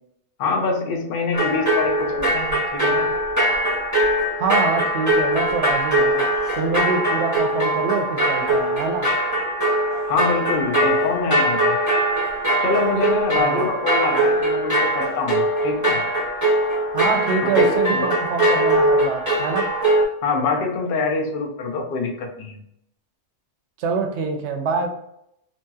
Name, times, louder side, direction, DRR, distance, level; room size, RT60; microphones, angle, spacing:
voice 1, 0.4-3.1 10.1-11.8 12.6-16.0 17.4-18.1 20.2-22.5, left 4 dB, 55° left, 1 dB, 0.7 m, -25 dB
sound 1, 1.3-20.1, right 1 dB, 15° right, 0.8 m, -21 dB
voice 2, 4.4-6.2 6.6-9.1 13.4-13.7 16.9-19.7 23.8-24.9, right 4 dB, 70° right, 4 dB, 0.8 m, -25 dB
2.8 x 2.7 x 2.3 m, 0.75 s
omnidirectional pair, 1.3 m